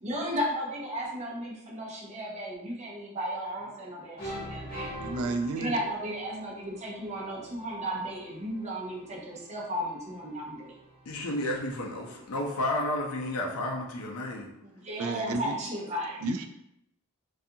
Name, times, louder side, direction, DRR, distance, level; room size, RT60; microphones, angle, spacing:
voice 1, 0.0-5.0 5.6-10.8 14.7-16.2, equal, 30° right, 0.6 m, -34 dB
sound 1, 3.6-3.9 4.2-13.0, equal, 25° left, 0.9 m, -45 dB
voice 2, 4.9-5.8 14.9-15.5 16.2-16.5, right 3 dB, 70° right, 0.3 m, -31 dB
voice 3, 11.1-14.5, left 1 dB, 85° left, 0.5 m, -31 dB
2.4 x 2.3 x 2.7 m
head